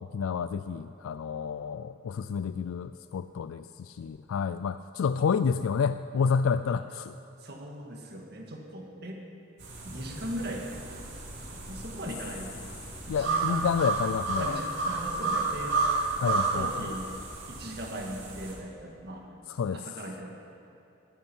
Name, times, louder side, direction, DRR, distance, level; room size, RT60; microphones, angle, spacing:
voice 1, 0.0-7.2 13.1-14.6 16.2-16.7 19.5-19.8, left 6 dB, 90° left, 12 dB, 0.3 m, -29 dB
voice 2, 7.4-9.2 9.8-10.7 11.5-12.7 13.1-13.9 14.3-15.8 16.3-17.1 17.5-19.3 19.7-20.3, right 1 dB, 50° right, 1 dB, 2.0 m, -39 dB
sound 1, 9.6-18.5, right 3 dB, 65° right, 3.6 m, -32 dB
17.5 x 13.5 x 4.6 m, 2.7 s
head